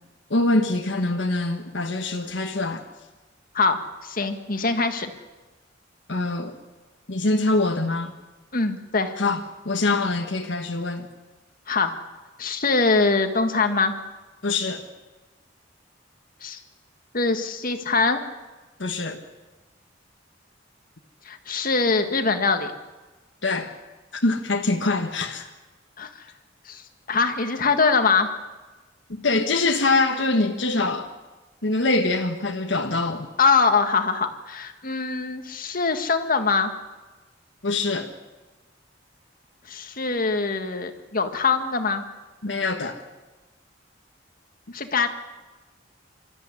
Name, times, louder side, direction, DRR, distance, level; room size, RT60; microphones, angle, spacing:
voice 1, 0.3-2.8 6.1-6.6 7.1-8.1 9.2-11.1 14.4-14.8 18.8-19.2 23.4-23.7 24.1-25.4 29.1-31.1 31.6-33.3 37.6-38.1 42.4-43.0, left 2 dB, 75° left, 3 dB, 1.4 m, -24 dB
voice 2, 3.5-5.1 8.5-9.1 11.7-12.0 12.4-13.9 16.4-16.6 17.1-18.2 21.3-22.7 26.0-26.1 26.7-26.8 27.1-28.3 33.4-36.7 39.7-42.0 44.7-45.1, left 4 dB, 50° left, 7 dB, 1.8 m, -23 dB
25.0 x 13.5 x 9.8 m, 1.2 s
head